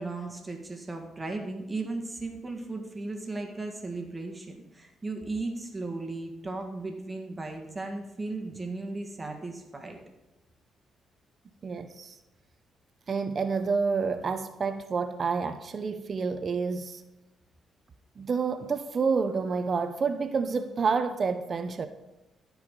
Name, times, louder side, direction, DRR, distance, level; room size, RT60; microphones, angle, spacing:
voice 1, 0.0-10.0, right 3 dB, 20° right, 1.5 m, -36 dB
voice 2, 11.6-12.2 13.1-17.0 18.2-21.9, right 5 dB, 45° right, 0.6 m, -29 dB
14.5 x 4.8 x 3.7 m
cardioid pair, 80°, 0 cm